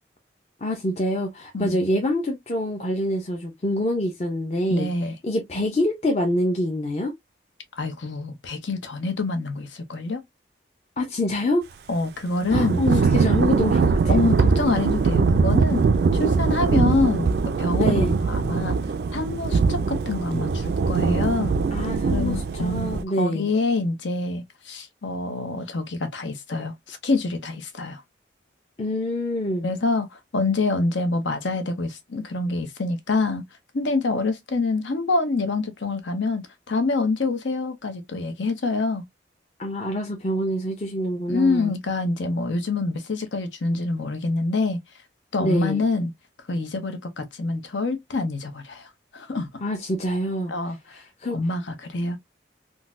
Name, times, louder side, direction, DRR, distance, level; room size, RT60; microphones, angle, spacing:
voice 1, 0.6-4.9 5.2-7.1 11.0-11.6 12.5-14.2 17.7-18.2 21.7-23.5 28.8-29.7 39.6-41.7 45.4-45.8 49.6-50.5 50.9-51.4, left 1 dB, 35° left, 0.5 m, -26 dB
voice 2, 4.7-5.1 7.8-10.2 11.9-12.8 14.1-15.8 16.1-18.8 19.1-21.6 22.1-28.0 29.6-33.4 33.7-39.0 41.3-44.8 45.3-46.1 46.5-48.9 49.1-49.5 50.5-51.0 51.3-52.2, left 3 dB, 85° left, 0.8 m, -26 dB
Thunder / Rain, 12.5-23.0, right 4 dB, 60° right, 0.3 m, -22 dB
3.8 x 2.2 x 2.4 m
head